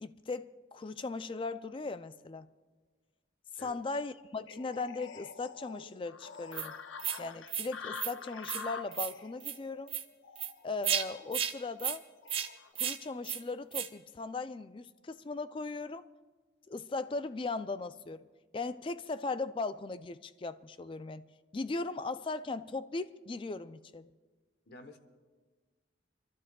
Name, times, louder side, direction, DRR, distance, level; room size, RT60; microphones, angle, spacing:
voice 1, 0.0-2.5 3.5-6.7 7.2-9.9 10.6-12.0 12.8-16.1 16.7-18.3 18.5-21.3 21.5-24.1, left 3 dB, 25° left, 0.3 m, -38 dB
sound 1, 4.5-12.7, left 5 dB, 85° left, 0.6 m, -47 dB
sound 2, 6.5-6.7 7.0-7.2 7.5-7.7 8.0-8.1 8.4-8.6 8.9-9.1 9.4-9.6 9.9-10.0 10.4-10.5 10.8-11.0 11.3-11.5 11.8-12.0 12.3-12.5 12.8-13.0 13.2-13.4 13.7-13.9, right 9 dB, 30° right, 0.5 m, -33 dB
voice 2, 24.7-25.0, left 1 dB, 55° left, 1.0 m, -50 dB
29.5 x 12.0 x 2.3 m
head